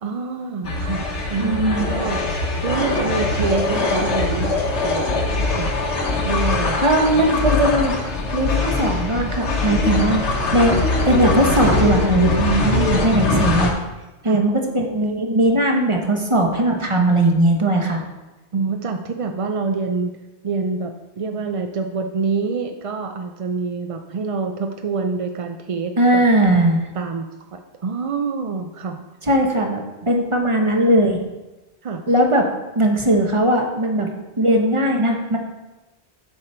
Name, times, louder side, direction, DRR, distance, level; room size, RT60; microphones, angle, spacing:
voice 1, 0.0-2.2 2.6-5.0 5.6-5.7 6.2-6.8 12.3-13.3 14.2-14.4 18.5-20.1 20.4-26.2 26.9-29.1 31.8-32.0, right 4 dB, 50° right, 5 dB, 0.4 m, -26 dB
sound 1, 0.6-13.7, left 3 dB, 85° left, 1.4 m, -22 dB
voice 2, 1.4-1.9 6.8-8.0 8.3-10.8 11.0-12.3 13.0-13.7 14.2-18.0 26.0-26.8 29.3-31.2 32.1-32.5 32.8-34.1 34.4-35.4, right 1 dB, 30° right, 2 dB, 1.1 m, -18 dB
7.8 x 6.8 x 4.3 m, 1.1 s
omnidirectional pair, 1.1 m